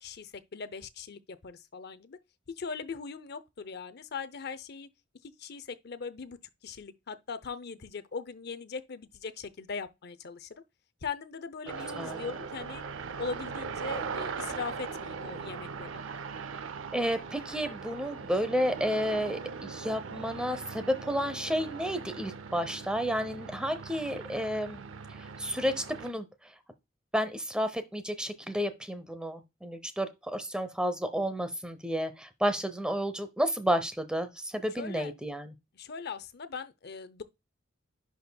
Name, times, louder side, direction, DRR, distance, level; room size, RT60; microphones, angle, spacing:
voice 1, 0.0-2.2 2.6-4.9 5.2-6.4 6.6-10.5 11.0-12.8 13.2-15.9 34.8-35.1 35.7-37.2, left 5 dB, 55° left, 0.6 m, -40 dB
sound 1, 11.7-26.1, right 5 dB, 85° right, 0.6 m, -40 dB
voice 2, 16.9-24.8 25.4-26.3 27.1-35.5, equal, 5° right, 0.7 m, -31 dB
11.0 x 4.3 x 2.2 m
head